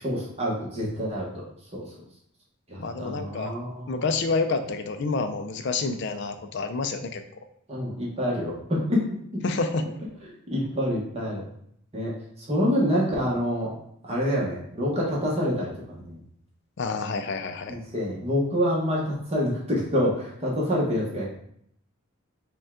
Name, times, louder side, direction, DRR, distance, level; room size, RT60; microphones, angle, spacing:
voice 1, 0.0-1.4 1.7-1.8 2.7-4.0 7.7-9.4 10.5-11.4 11.9-12.1 12.4-13.7 14.0-16.2 17.7-21.3, equal, 30° right, -4 dB, 0.9 m, -27 dB
voice 2, 2.8-3.5 3.9-7.2 9.4-9.8 16.8-17.8, left 4 dB, 50° left, 8 dB, 0.4 m, -28 dB
5.2 x 2.3 x 3.6 m, 0.69 s
head